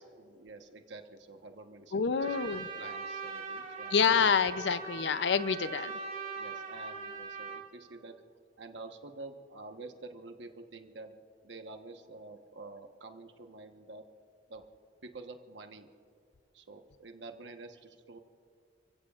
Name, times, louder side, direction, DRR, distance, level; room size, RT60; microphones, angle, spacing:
voice 1, 0.0-4.2 6.3-8.2 8.6-11.2 11.4-14.0 14.5-14.6 15.0-15.9 16.5-18.2, right 3 dB, 75° right, 5 dB, 1.2 m, -48 dB
voice 2, 1.9-2.7 3.9-5.9 9.8-9.9, left 6 dB, 70° left, 13 dB, 0.6 m, -27 dB
Trumpet, 2.2-7.6, right 4 dB, 45° right, 3.0 m, -41 dB
30.0 x 16.0 x 2.5 m, 2.4 s
head